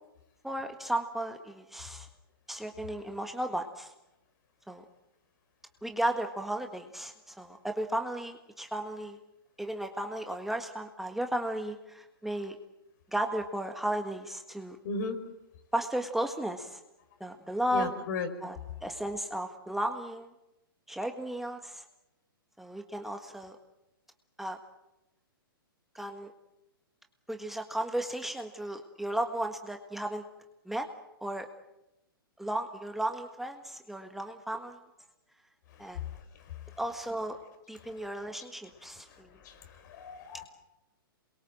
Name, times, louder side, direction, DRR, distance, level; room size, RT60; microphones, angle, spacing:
voice 1, 0.4-2.1 2.5-3.9 4.7-4.8 5.8-9.2 9.6-12.6 13.1-14.8 15.7-16.8 17.2-17.9 18.4-20.3 20.9-21.8 22.6-23.6 24.4-24.6 25.9-26.3 27.3-30.2 30.6-30.9 31.2-31.5 32.4-34.8 35.8-36.0 36.8-37.4 37.7-39.3, right 1 dB, ahead, 4 dB, 1.6 m, -34 dB
voice 2, 14.8-15.2 17.7-18.3 39.4-40.4, left 4 dB, 50° left, 8 dB, 4.9 m, -35 dB
28.0 x 22.5 x 7.6 m, 0.93 s
hypercardioid pair, 125°, 12 cm